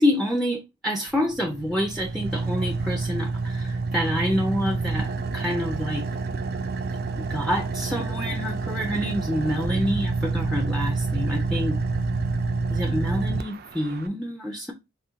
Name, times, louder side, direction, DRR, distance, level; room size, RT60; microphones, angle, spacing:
voice 1, 0.0-6.1 7.2-11.8 12.7-14.7, equal, ahead, 0.5 m, -27 dB
Car / Idling, 1.1-14.1, right 3 dB, 55° right, 0.4 m, -28 dB
4.3 x 2.3 x 3.5 m
head